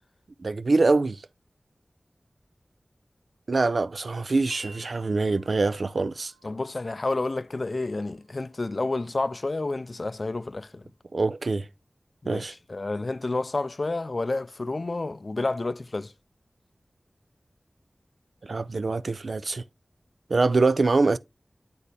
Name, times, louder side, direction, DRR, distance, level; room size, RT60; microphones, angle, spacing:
voice 1, 0.4-1.2 3.5-6.3 11.1-11.7 12.3-12.5 18.4-19.6 20.3-21.2, right 3 dB, 75° right, 0.4 m, -24 dB
Wind chime, 4.5-10.6, right 2 dB, 20° right, 1.0 m, -49 dB
voice 2, 6.4-10.9 12.2-16.1, left 2 dB, 50° left, 0.4 m, -30 dB
8.2 x 4.2 x 3.3 m
wide cardioid pair, 75°, 0 cm